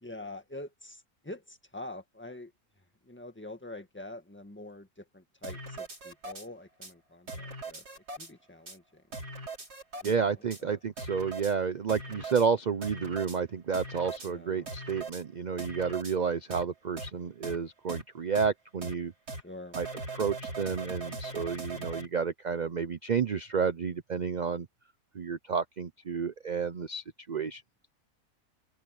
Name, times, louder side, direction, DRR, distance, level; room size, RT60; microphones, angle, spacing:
voice 1, 0.0-2.5 3.1-7.8 8.2-9.0 10.0-10.1 10.6-10.8 14.3-14.7 19.4-19.8, left 2 dB, 5° left, 1.7 m, -45 dB
sound 1, 5.4-6.5 6.8-6.9 7.3-8.3 8.7-8.8 9.1-10.2 10.5-10.6 11.0-11.5 11.9-12.5 12.8-13.4 13.7-14.3 14.7-15.2 15.6-16.2 16.5-16.6 17.0-17.1 17.4-17.6 17.9-18.0 18.4-18.5 18.8-18.9 19.3-19.4 19.7-22.1, right 2 dB, 85° right, 6.5 m, -40 dB
voice 2, 10.0-19.1 19.7-19.9 20.1-24.7 25.1-27.6, right 6 dB, 55° right, 0.5 m, -31 dB
omnidirectional pair, 1.7 m